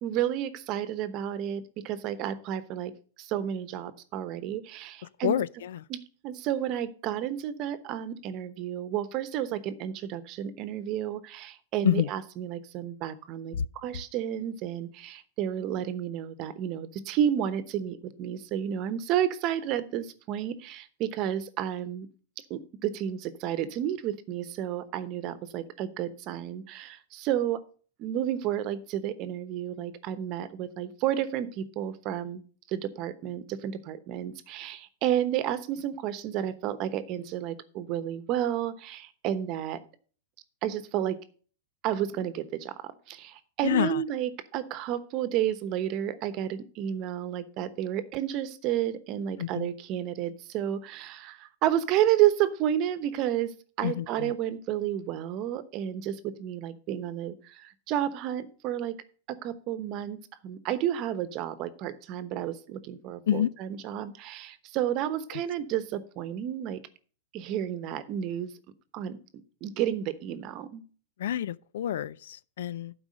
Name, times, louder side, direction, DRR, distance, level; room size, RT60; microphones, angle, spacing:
voice 1, 0.0-2.9 3.2-5.4 5.9-22.1 22.5-27.6 28.0-39.8 40.6-41.2 41.8-59.0 59.3-60.2 60.4-66.8 67.3-68.5 68.9-69.2 69.6-70.8, right 11 dB, 40° right, 0.9 m, -31 dB
voice 2, 5.2-5.8 11.8-12.1 13.5-13.7 43.6-44.0 49.4-49.7 53.8-54.3 63.3-63.5 65.3-65.4 71.2-72.9, left 11 dB, 80° left, 0.4 m, -28 dB
11.5 x 4.8 x 6.3 m
supercardioid pair, 145°, 0 cm